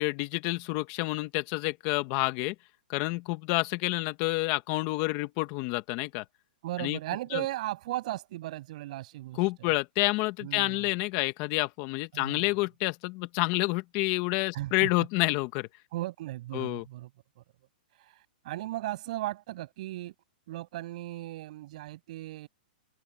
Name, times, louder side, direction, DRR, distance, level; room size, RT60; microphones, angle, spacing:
voice 1, 0.0-2.5 2.9-6.2 6.8-7.0 7.3-7.4 9.4-15.7 16.5-16.8, left 22 dB, 30° left, 1.6 m, -29 dB
voice 2, 6.6-9.7 10.4-10.8 12.1-12.5 14.5-14.9 15.9-17.1 18.0-20.1 20.5-22.5, right 16 dB, 45° right, 7.5 m, -36 dB
open air
hypercardioid pair, 160°, 5 cm